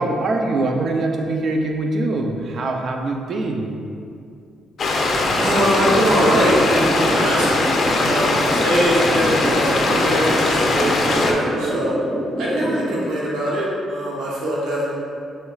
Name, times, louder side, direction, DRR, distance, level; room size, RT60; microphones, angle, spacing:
voice 1, 0.0-3.7, right 2 dB, 55° right, 2 dB, 0.5 m, -23 dB
sound 1, 4.8-11.3, left 2 dB, 55° left, 0.5 m, -20 dB
sound 2, 5.4-12.9, right 1 dB, 30° right, 0.8 m, -26 dB
voice 2, 5.4-11.9 12.4-15.0, equal, 85° right, -6 dB, 0.8 m, -22 dB
6.2 x 3.1 x 2.4 m, 2.4 s
cardioid pair, 90°, 0 cm